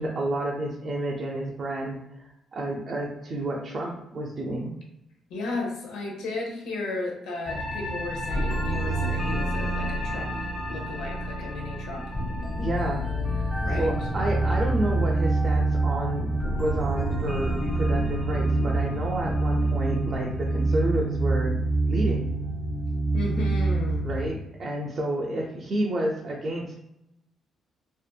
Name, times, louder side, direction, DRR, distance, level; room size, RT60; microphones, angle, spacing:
voice 1, 0.0-2.0 2.5-4.7 12.6-13.5 13.7-16.3 16.6-21.5 21.9-22.3 24.0-26.8, right 1 dB, 45° right, -1 dB, 0.5 m, -30 dB
voice 2, 5.3-12.1 13.6-13.9 23.1-24.1, left 2 dB, 90° left, 0 dB, 0.7 m, -34 dB
sound 1, 7.5-24.3, right 2 dB, 25° left, 1.3 m, -26 dB
2.6 x 2.5 x 2.2 m, 0.84 s
cardioid pair, 90°, 0 cm